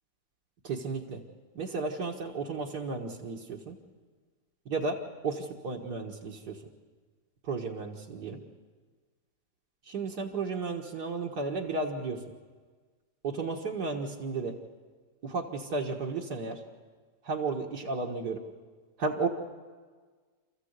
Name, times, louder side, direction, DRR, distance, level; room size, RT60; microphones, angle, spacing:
voice 1, 0.6-1.2 1.5-3.8 4.7-5.0 5.2-6.6 7.4-8.4 9.9-12.2 13.2-14.5 15.2-16.6 17.2-18.4 19.0-19.3, right 4 dB, 70° right, -1 dB, 2.2 m, -33 dB
28.0 x 14.5 x 8.1 m, 1.5 s
omnidirectional pair, 1.8 m